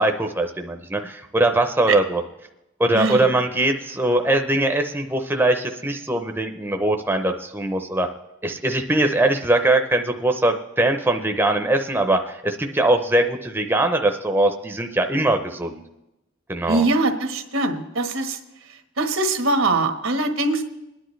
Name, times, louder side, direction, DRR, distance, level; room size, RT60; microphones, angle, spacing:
voice 1, 0.0-2.2 2.8-8.1 8.4-15.8 16.5-16.9, right 1 dB, 10° right, 5 dB, 0.6 m, -21 dB
voice 2, 2.9-3.3 16.7-18.4 19.0-20.6, right 2 dB, 85° right, 5 dB, 1.3 m, -22 dB
27.0 x 10.0 x 3.2 m, 0.94 s
head